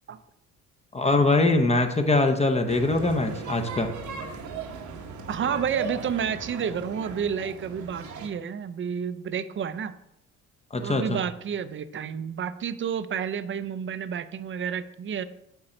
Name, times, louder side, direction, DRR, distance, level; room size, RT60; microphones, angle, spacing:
voice 1, 0.9-3.9 10.7-11.2, left 2 dB, 20° left, 5 dB, 0.8 m, -22 dB
sound 1, 2.7-8.3, right 4 dB, 70° right, 1.0 m, -37 dB
voice 2, 5.3-9.9 10.8-15.2, right 7 dB, 40° right, 13 dB, 0.5 m, -30 dB
8.1 x 3.8 x 4.4 m, 0.82 s
cardioid pair, 90°, 30 cm